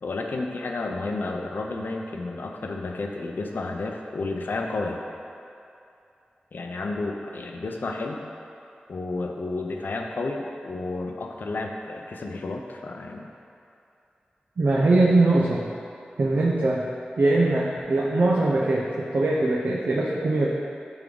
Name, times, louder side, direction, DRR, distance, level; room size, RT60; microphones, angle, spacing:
voice 1, 0.0-5.0 6.5-8.3 8.9-13.3, left 3 dB, 75° left, 2 dB, 0.7 m, -31 dB
voice 2, 14.6-15.7 16.2-16.8 17.2-20.5, right 2 dB, 65° right, -4 dB, 0.7 m, -21 dB
10.5 x 3.6 x 3.9 m, 2.7 s
wide cardioid pair, 80°, 3 cm